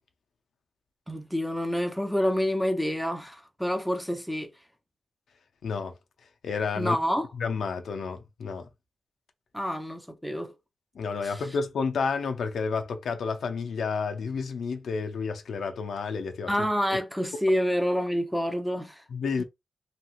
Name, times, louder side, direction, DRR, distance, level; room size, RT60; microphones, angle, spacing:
voice 1, 1.1-4.5 6.8-7.3 9.5-10.5 11.2-11.4 16.5-19.0 19.4-19.5, equal, ahead, 0.4 m, -28 dB
voice 2, 5.6-6.0 6.4-7.0 7.3-8.7 10.9-16.5 19.1-19.4, left 5 dB, 75° left, 0.4 m, -30 dB
3.0 x 2.8 x 2.3 m
wide cardioid pair, 140°, 0 cm